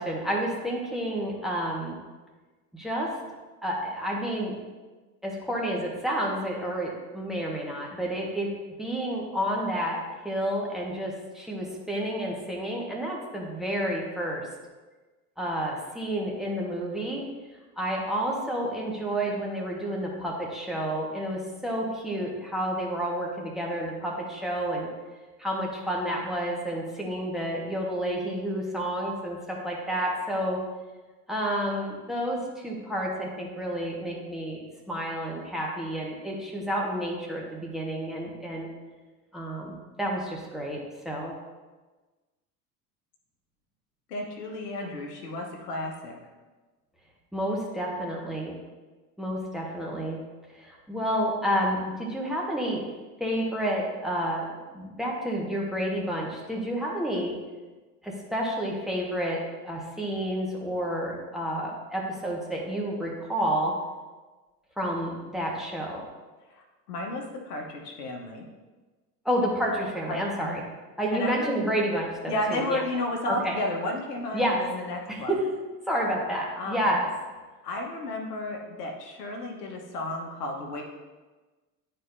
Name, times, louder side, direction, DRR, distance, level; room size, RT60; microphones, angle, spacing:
voice 1, 0.0-2.0 2.7-3.1 3.6-4.5 5.2-8.5 8.8-10.0 10.2-14.4 15.4-17.2 17.8-24.9 25.4-30.6 31.3-34.6 34.9-38.7 39.3-40.8 41.0-41.3 47.3-48.6 49.2-50.2 50.5-52.8 53.2-54.5 54.7-57.4 58.0-59.4 59.6-63.7 64.8-66.0 69.2-70.6 71.0-72.8 73.3-73.5 74.3-74.6 75.1-75.4 75.9-77.1, equal, ahead, -2 dB, 1.4 m, -30 dB
voice 2, 44.1-46.1 66.5-68.5 70.1-70.6 71.1-71.6 72.3-75.3 76.6-76.9 77.6-80.8, left 1 dB, 70° left, 1 dB, 1.3 m, -33 dB
11.0 x 4.4 x 2.7 m, 1.3 s
figure-of-eight pair, 75°, 49 cm